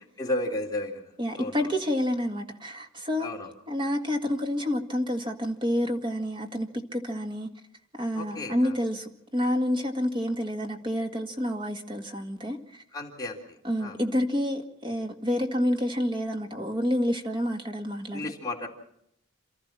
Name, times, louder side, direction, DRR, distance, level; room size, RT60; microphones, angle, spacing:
voice 1, 0.2-1.1 1.4-1.6 3.2-3.5 8.2-8.7 12.9-13.4 13.8-14.0 18.1-18.7, left 1 dB, 15° left, 3.4 m, -32 dB
voice 2, 1.2-3.3 3.7-7.5 7.9-12.8 13.6-18.3, equal, 20° right, 1.9 m, -29 dB
28.0 x 13.5 x 7.5 m
head